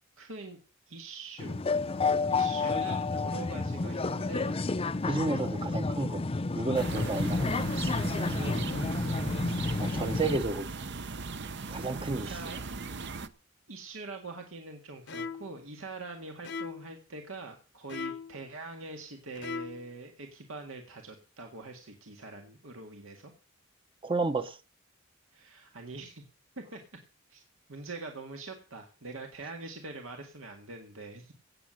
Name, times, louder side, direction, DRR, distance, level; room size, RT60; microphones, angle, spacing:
voice 1, 0.2-0.6 0.9-1.6 2.3-4.6 5.5-6.0 6.9-7.5 8.2-9.3 12.1-12.6 13.7-23.3 25.3-26.2 26.6-26.8 27.3-27.4 27.7-31.3, right 3 dB, 85° right, 1.9 m, -44 dB
sound 1, 1.4-10.4, left 3 dB, 30° left, 0.6 m, -30 dB
voice 2, 5.0-6.2 6.5-7.7 9.8-10.7 11.7-12.4 24.0-24.6, right 3 dB, 25° right, 0.8 m, -31 dB
sound 2, 6.7-13.3, right 4 dB, 60° right, 0.9 m, -38 dB
sound 3, 15.1-15.6 16.4-16.9 17.9-18.4 19.3-19.9, left 5 dB, 60° left, 0.9 m, -38 dB
17.0 x 7.4 x 6.4 m
head